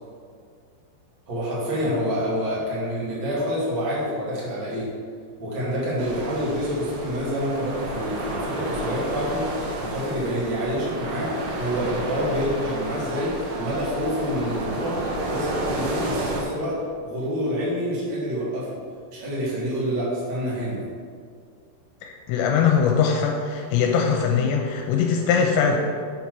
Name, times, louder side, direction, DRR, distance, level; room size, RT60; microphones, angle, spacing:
voice 1, 1.3-4.9 5.4-9.5 9.7-11.3 11.6-15.0 15.3-18.7 19.1-20.8, equal, 45° right, -8 dB, 1.5 m, -27 dB
sound 1, 6.0-16.4, right 1 dB, 75° right, 2.0 m, -31 dB
voice 2, 22.0-25.8, left 6 dB, 85° left, 1 dB, 2.8 m, -21 dB
6.9 x 4.2 x 6.0 m, 2.1 s
omnidirectional pair, 5.1 m